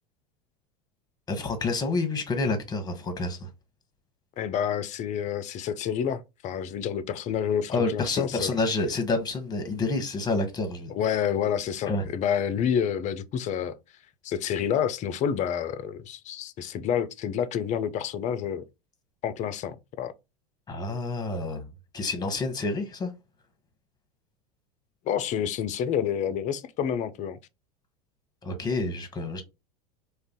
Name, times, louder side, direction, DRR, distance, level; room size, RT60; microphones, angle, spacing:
voice 1, 1.3-3.5 7.7-10.9 11.9-12.0 20.7-21.7 21.9-23.1 28.4-29.4, left 3 dB, 20° left, 1.0 m, -28 dB
voice 2, 4.4-8.5 10.9-13.8 14.2-18.7 19.2-20.1 25.1-27.4, left 8 dB, 35° left, 0.4 m, -28 dB
2.5 x 2.3 x 3.5 m
hypercardioid pair, 85°, 20 cm